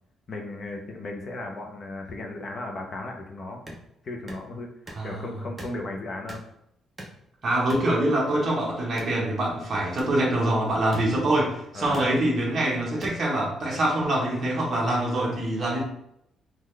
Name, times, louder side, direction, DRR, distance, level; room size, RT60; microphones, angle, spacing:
voice 1, 0.3-3.6 4.0-4.7 5.0-6.4 11.7-12.1, left 2 dB, 30° left, 2 dB, 0.6 m, -35 dB
sound 1, 3.7-3.8 4.3-4.4 4.9-5.1 5.6-5.8 6.3-6.5 7.0-7.2 7.7-7.9 9.0-9.2 10.0-10.1 10.9-11.1 11.9-12.1 13.0-13.1, right 1 dB, 15° right, 0.6 m, -40 dB
voice 2, 5.0-5.3 7.4-15.8, right 1 dB, 30° right, -3 dB, 1.0 m, -25 dB
3.8 x 2.3 x 3.2 m, 0.79 s
cardioid pair, 170°, 0 cm